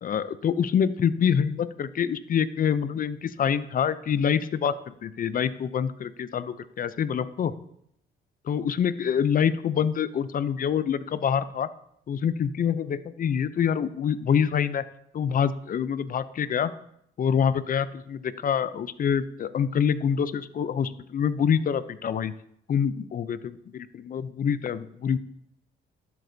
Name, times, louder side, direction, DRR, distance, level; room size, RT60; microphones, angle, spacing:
voice 1, 0.0-7.5 8.5-11.7 12.1-14.8 15.1-16.7 17.2-22.3 22.7-25.2, left 7 dB, 45° left, 15 dB, 0.5 m, -26 dB
11.5 x 7.8 x 2.7 m, 0.74 s
cardioid pair, 90°, 20 cm